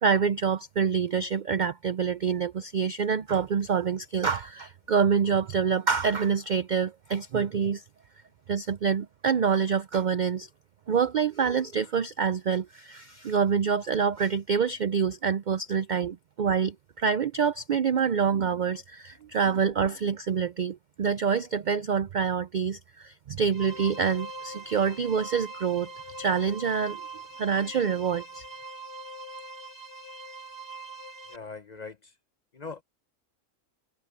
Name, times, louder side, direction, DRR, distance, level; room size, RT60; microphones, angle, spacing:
voice 1, 0.0-7.8 8.5-10.5 10.9-25.9 26.2-27.0 27.4-28.4, right 6 dB, 65° right, 0.4 m, -26 dB
sound 1, 23.5-31.4, right 2 dB, 45° right, 3.2 m, -42 dB
voice 2, 31.3-32.0 32.5-32.8, left 4 dB, 40° left, 0.7 m, -40 dB
omnidirectional pair, 1.4 m